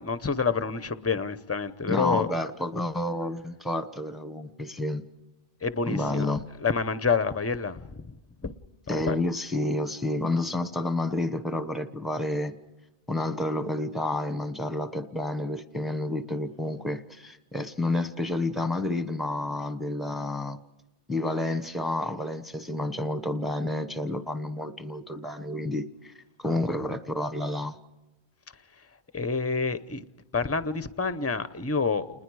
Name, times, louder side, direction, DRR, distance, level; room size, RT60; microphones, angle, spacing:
voice 1, 0.0-2.3 5.6-6.3 6.6-8.2 8.4-8.5 8.9-9.2 28.8-28.9 29.1-30.0 30.3-32.2, left 5 dB, 15° left, 13 dB, 0.6 m, -28 dB
voice 2, 1.9-5.0 5.9-6.4 8.9-12.5 13.1-20.6 21.1-26.1 26.4-27.8, left 2 dB, ahead, 10 dB, 1.0 m, -30 dB
28.5 x 20.5 x 4.8 m, 1.0 s
omnidirectional pair, 1.2 m